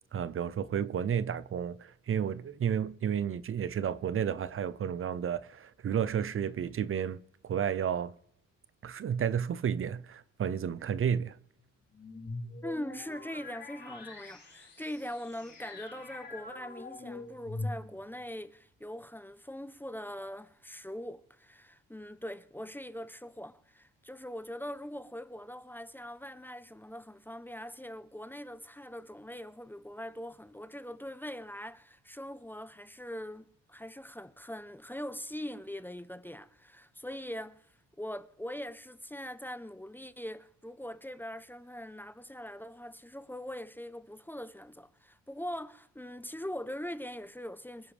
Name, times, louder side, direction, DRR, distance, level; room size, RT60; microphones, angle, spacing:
voice 1, 0.1-8.1 8.8-11.4, right 8 dB, 45° right, 0.6 m, -32 dB
sound 1, 11.9-18.2, left 2 dB, 35° left, 6.6 m, -43 dB
voice 2, 12.6-37.7 38.0-47.9, equal, 5° left, 0.7 m, -42 dB
25.5 x 10.5 x 3.4 m
cardioid pair, 90°, 30 cm